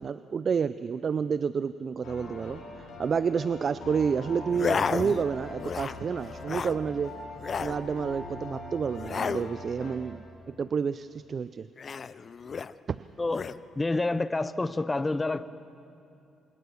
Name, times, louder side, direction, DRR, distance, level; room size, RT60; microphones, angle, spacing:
voice 1, 0.0-2.6 3.0-7.1 7.6-11.7, right 6 dB, 45° right, 14 dB, 0.5 m, -29 dB
sound 1, 2.0-10.0, left 2 dB, 80° left, 5.8 m, -42 dB
sound 2, 4.5-5.3 5.6-6.0 6.3-6.8 7.4-7.8 9.0-9.5 11.8-12.7 13.3-13.6, left 6 dB, 45° left, 0.5 m, -32 dB
voice 2, 13.2-13.5 13.8-15.5, left 2 dB, 20° left, 14 dB, 0.9 m, -28 dB
26.5 x 19.5 x 7.0 m, 2.7 s
cardioid pair, 90°, 0 cm